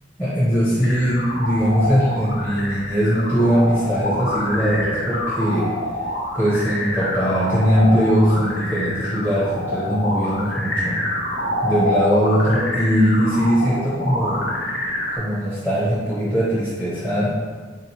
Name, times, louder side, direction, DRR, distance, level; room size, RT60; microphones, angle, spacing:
voice 1, 0.2-5.7 6.3-11.0 11.6-14.4 15.1-17.3, equal, 10° left, -10 dB, 0.6 m, -20 dB
sound 1, 0.8-15.2, left 1 dB, 85° left, 0.7 m, -27 dB
4.0 x 2.8 x 2.9 m, 1.5 s
head